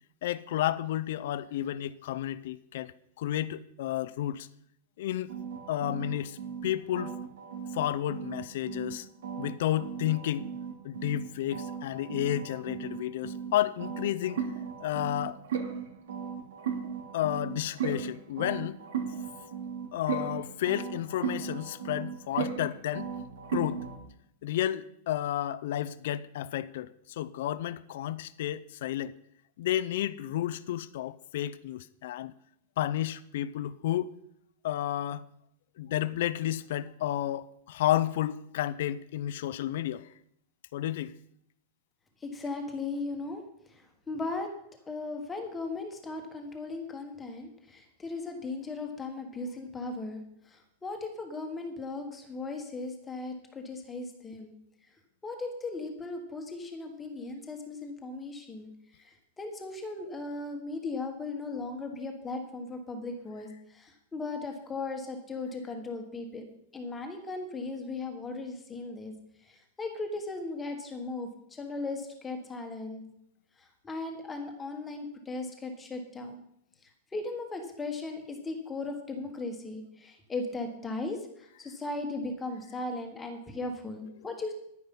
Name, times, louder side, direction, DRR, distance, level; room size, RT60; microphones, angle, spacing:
voice 1, 0.2-2.9 3.2-4.5 5.0-5.3 5.7-7.1 7.7-9.1 9.4-10.5 10.8-14.4 14.8-15.4 17.1-18.8 19.9-23.1 23.5-23.9 24.4-29.2 29.6-32.3 32.8-34.1 34.6-35.2 35.8-40.1 40.7-41.1, left 12 dB, 55° left, 0.6 m, -31 dB
sound 1, 5.3-8.9 9.2-13.5 13.8-24.0, right 7 dB, 80° right, 3.3 m, -37 dB
voice 2, 42.2-43.4 43.7-44.5 44.9-54.5 55.2-58.7 59.0-66.4 66.7-69.1 69.4-73.0 73.6-76.4 76.8-84.5, left 3 dB, 10° left, 1.4 m, -37 dB
11.0 x 9.6 x 5.5 m
supercardioid pair, 175°, 0 cm